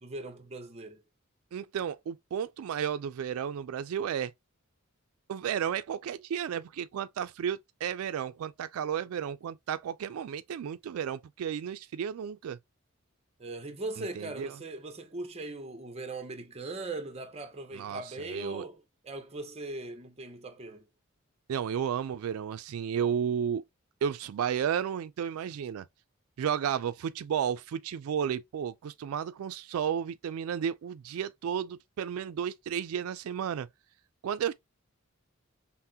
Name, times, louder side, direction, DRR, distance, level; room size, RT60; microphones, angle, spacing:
voice 1, 0.0-1.0 13.4-20.9, right 2 dB, 30° right, 0.8 m, -40 dB
voice 2, 1.5-4.3 5.3-12.6 14.0-14.6 17.7-18.6 21.5-23.6 24.0-25.9 26.4-33.7 34.2-34.5, right 8 dB, 90° right, 0.3 m, -33 dB
5.7 x 2.1 x 2.7 m
head